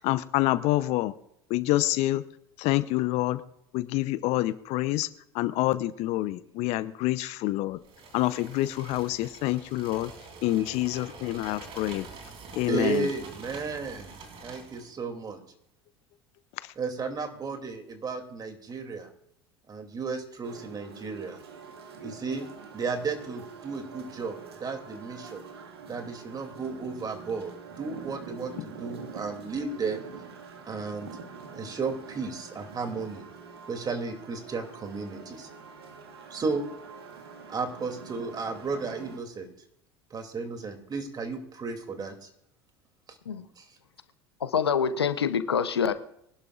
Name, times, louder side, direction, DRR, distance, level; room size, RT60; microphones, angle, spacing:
voice 1, 0.0-1.1 1.5-2.2 2.6-3.4 3.7-5.1 5.3-7.8 8.1-10.1 10.4-12.1 12.5-13.1, left 17 dB, 55° left, 15 dB, 0.7 m, -27 dB
sound 1, 7.8-14.9, right 4 dB, 45° right, 3.3 m, -46 dB
voice 2, 12.7-14.1 14.4-15.4 16.8-19.1 19.7-21.4 22.0-22.5 22.7-25.4 25.8-30.0 30.7-31.1 31.5-33.2 33.7-35.5 36.3-36.7 37.5-39.5 40.1-42.3 43.6-43.7, right 4 dB, 30° right, 5 dB, 2.7 m, -34 dB
sound 2, 20.4-39.2, right 5 dB, 85° right, 1.8 m, -45 dB
voice 3, 44.4-45.9, left 7 dB, 90° left, 11 dB, 0.8 m, -26 dB
23.0 x 11.5 x 2.5 m, 0.74 s
hypercardioid pair, 75°, 13 cm